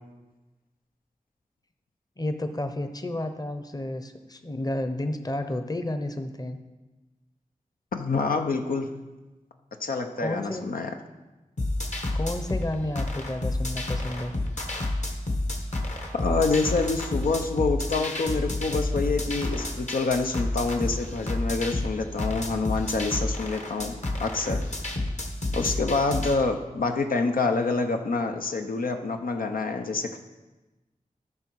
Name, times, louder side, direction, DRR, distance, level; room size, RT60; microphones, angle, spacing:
voice 1, 2.2-6.6 10.2-10.6 12.1-14.3, left 1 dB, 25° left, 7 dB, 0.8 m, -31 dB
voice 2, 7.9-8.9 9.8-10.9 16.1-24.6 25.5-30.2, left 3 dB, 90° left, 4 dB, 0.7 m, -27 dB
sound 1, 11.6-26.3, left 2 dB, 55° left, 1.3 m, -30 dB
13.5 x 5.4 x 4.6 m, 1.1 s
wide cardioid pair, 60°, 14 cm